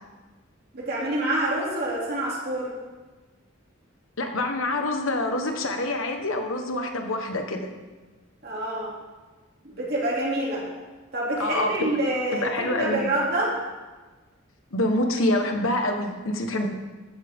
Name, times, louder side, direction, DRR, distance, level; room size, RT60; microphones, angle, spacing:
voice 1, 0.7-2.7 8.4-8.9 9.6-10.7 11.1-13.5, right 1 dB, 50° right, -4 dB, 2.9 m, -27 dB
voice 2, 4.2-7.7 11.4-12.0 12.3-13.1 14.7-16.7, left 1 dB, 80° left, 4 dB, 1.4 m, -26 dB
14.0 x 8.8 x 3.7 m, 1.3 s
head